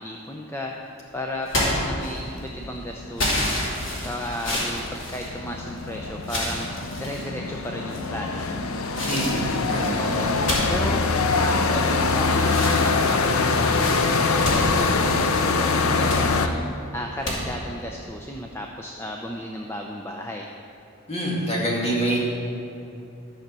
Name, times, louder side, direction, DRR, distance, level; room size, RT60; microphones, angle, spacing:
voice 1, 0.0-3.5 4.0-6.7 7.0-8.6 9.0-9.5 10.0-11.0 11.4-20.5, left 1 dB, 10° left, 1 dB, 0.5 m, -34 dB
sound 1, 1.5-2.5 3.2-5.8 6.2-7.3 7.9-8.4 8.9-12.1 12.4-15.4 15.8-16.3 17.2-17.4, left 1 dB, 60° left, 2.8 m, -29 dB
sound 2, 2.6-16.5, left 4 dB, 90° left, 0.7 m, -24 dB
voice 2, 9.1-10.0 21.1-22.2, right 1 dB, 30° left, -4 dB, 2.3 m, -25 dB
12.0 x 6.5 x 6.8 m, 2.9 s
head